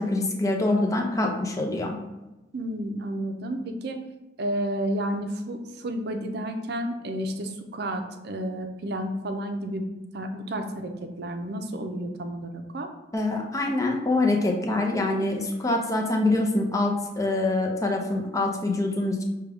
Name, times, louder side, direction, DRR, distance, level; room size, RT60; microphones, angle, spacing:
voice 1, 0.0-2.0 13.1-19.2, left 2 dB, 20° left, 1 dB, 0.6 m, -25 dB
voice 2, 2.5-4.0 4.4-9.9 10.1-10.9 11.2-12.9, right 1 dB, 65° right, 6 dB, 0.5 m, -31 dB
6.2 x 2.3 x 3.5 m, 1.0 s
head